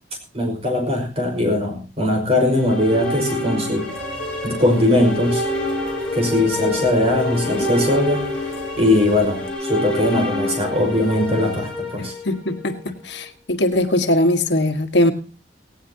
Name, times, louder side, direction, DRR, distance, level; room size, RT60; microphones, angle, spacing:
voice 1, 0.3-3.9 4.4-5.4 6.1-8.2 8.8-12.1, left 1 dB, 35° right, 4 dB, 5.3 m, -20 dB
sound 1, 2.4-12.6, left 1 dB, 5° left, 5.3 m, -27 dB
Rain, 3.9-9.5, left 2 dB, 50° left, 3.8 m, -33 dB
voice 2, 12.0-15.1, left 1 dB, 70° left, 7 dB, 1.7 m, -21 dB
18.0 x 17.0 x 2.8 m, 0.33 s
head